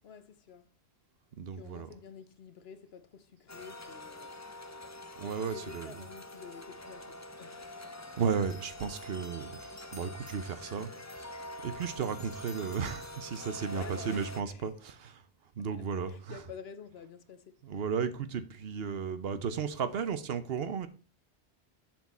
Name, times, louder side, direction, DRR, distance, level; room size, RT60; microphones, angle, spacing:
voice 1, 0.0-0.7 1.5-4.4 5.2-7.7 13.7-14.7 16.1-17.6, left 6 dB, 70° left, 1.0 m, -49 dB
voice 2, 1.4-1.9 5.2-6.0 8.2-15.2 15.6-16.4 17.6-20.9, right 6 dB, 65° right, 1.0 m, -34 dB
sound 1, 3.5-14.4, left 1 dB, 20° left, 0.5 m, -45 dB
7.4 x 7.3 x 4.2 m
omnidirectional pair, 1.1 m